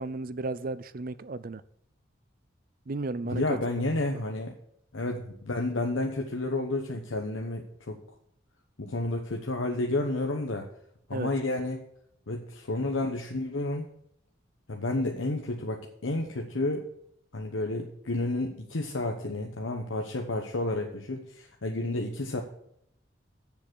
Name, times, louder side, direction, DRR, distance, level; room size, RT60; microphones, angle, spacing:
voice 1, 0.0-1.6 2.9-3.6 11.1-11.3, right 3 dB, 45° right, 16 dB, 0.5 m, -34 dB
voice 2, 3.2-4.5 4.9-8.0 8.8-10.6 11.1-11.8 12.3-13.9 14.7-16.8 17.3-22.4, left 2 dB, 90° left, 2 dB, 1.0 m, -31 dB
7.6 x 7.0 x 6.3 m, 0.73 s
head